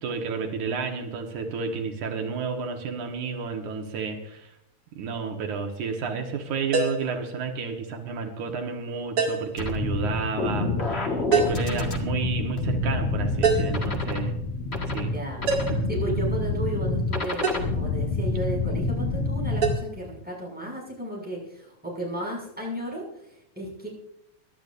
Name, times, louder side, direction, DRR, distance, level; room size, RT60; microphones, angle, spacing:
voice 1, 0.0-4.5 5.0-14.3 14.9-15.1 15.7-15.8, right 5 dB, 80° right, 3 dB, 2.8 m, -31 dB
sound 1, 6.7-7.1 9.2-9.6 11.3-11.7 13.4-13.8 15.5-15.9 17.4-17.7 19.6-19.8, right 4 dB, 50° right, 2.9 m, -24 dB
sound 2, 9.6-19.7, left 2 dB, 30° left, 1.3 m, -27 dB
voice 2, 15.1-15.4 15.9-23.9, right 1 dB, 5° right, -4 dB, 6.1 m, -34 dB
24.0 x 12.0 x 2.6 m, 0.82 s
omnidirectional pair, 3.4 m